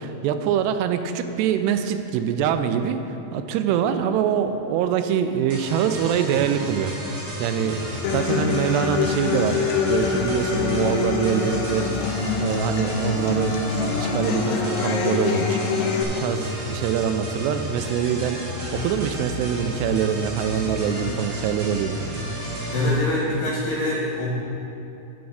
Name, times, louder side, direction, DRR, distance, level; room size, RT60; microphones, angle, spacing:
voice 1, 0.0-7.1 7.4-11.9 12.3-13.7 14.0-15.6 16.1-22.0, right 8 dB, 85° right, 8 dB, 2.6 m, -24 dB
sound 1, 5.5-23.0, equal, 45° right, 2.4 m, -32 dB
Human voice / Acoustic guitar, 8.0-16.0, left 6 dB, 90° left, 2.0 m, -25 dB
voice 2, 22.7-24.3, left 1 dB, 70° left, -7 dB, 3.8 m, -24 dB
9.3 x 5.9 x 6.4 m, 2.9 s
omnidirectional pair, 4.8 m